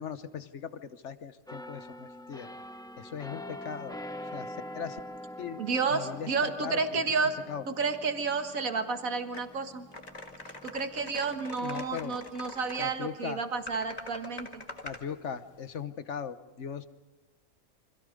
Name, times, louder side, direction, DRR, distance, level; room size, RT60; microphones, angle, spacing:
voice 1, 0.0-2.5 3.0-4.0 4.2-5.0 5.4-5.6 5.9-7.1 7.5-7.6 11.6-12.2 12.8-13.4 14.8-16.8, left 7 dB, 55° left, 11 dB, 1.3 m, -39 dB
sound 1, 1.5-13.0 13.4-13.7, left 1 dB, 5° left, 0.7 m, -45 dB
voice 2, 5.6-7.4 7.7-9.9 10.6-14.6, right 4 dB, 70° right, 6 dB, 2.0 m, -31 dB
sound 2, 9.3-9.5 9.9-12.9 13.7-15.0, left 2 dB, 30° left, 1.8 m, -44 dB
29.0 x 25.5 x 5.2 m, 1.1 s
omnidirectional pair, 1.5 m